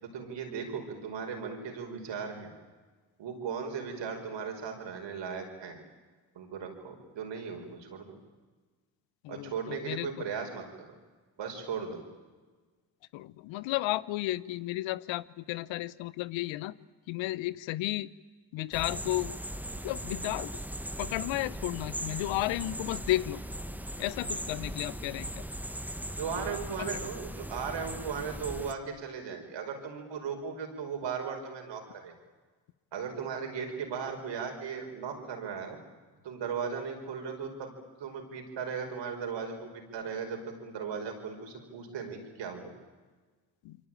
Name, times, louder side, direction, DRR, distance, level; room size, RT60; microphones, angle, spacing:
voice 1, 0.0-2.5 3.2-5.8 6.4-8.2 9.3-10.9 11.4-12.0 26.2-32.1 32.9-35.8 36.2-37.7 38.0-42.7, right 6 dB, 70° right, 4 dB, 5.4 m, -37 dB
voice 2, 9.2-10.1 13.1-16.7 17.1-18.1 18.5-19.3 19.8-20.5 21.0-23.4 24.0-25.4 26.8-26.9 43.6-43.8, left 17 dB, 85° left, 19 dB, 0.9 m, -33 dB
sound 1, 18.7-28.7, right 1 dB, 5° right, 1.7 m, -39 dB
27.5 x 24.0 x 9.1 m, 1.4 s
supercardioid pair, 50°, 45 cm